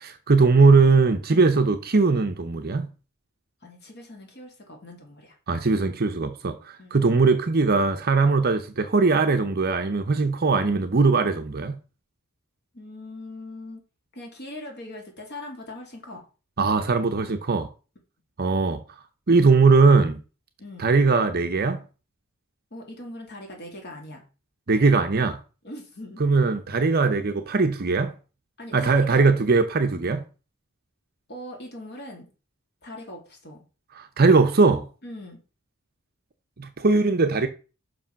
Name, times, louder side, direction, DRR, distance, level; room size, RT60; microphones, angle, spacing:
voice 1, 0.0-2.9 5.5-11.7 16.6-17.7 18.4-18.8 19.3-20.2 20.8-21.8 24.7-25.4 26.2-28.1 28.7-30.2 34.0-34.9 36.6-37.5, right 4 dB, 45° right, 0.7 m, -20 dB
voice 2, 3.6-5.4 6.8-7.0 12.7-13.8 14.1-16.3 20.6-20.9 22.7-24.2 25.6-26.2 28.6-29.2 31.3-32.3 32.8-33.6 35.0-35.4, left 1 dB, 50° left, 2.6 m, -40 dB
6.0 x 5.1 x 5.7 m
head